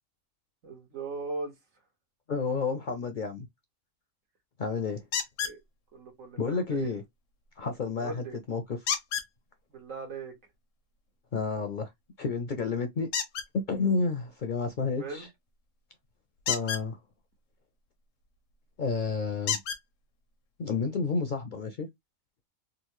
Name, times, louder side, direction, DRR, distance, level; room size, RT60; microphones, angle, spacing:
voice 1, 0.6-1.5 5.4-5.6 5.9-6.9 8.0-8.3 9.7-10.3 15.0-15.3, right 3 dB, 85° right, 1.7 m, -39 dB
voice 2, 2.3-3.5 4.6-5.0 6.4-7.0 7.6-8.9 11.3-11.9 12.2-13.1 13.5-15.3 16.5-17.0 18.8-19.6 20.6-21.9, left 4 dB, 55° left, 0.6 m, -30 dB
sound 1, 5.1-5.6 8.9-9.3 13.1-13.5 16.4-16.8 18.5-18.6 19.5-19.8 20.8-20.9 21.4-21.5, left 7 dB, 85° left, 1.1 m, -30 dB
3.7 x 2.4 x 2.9 m
omnidirectional pair, 1.3 m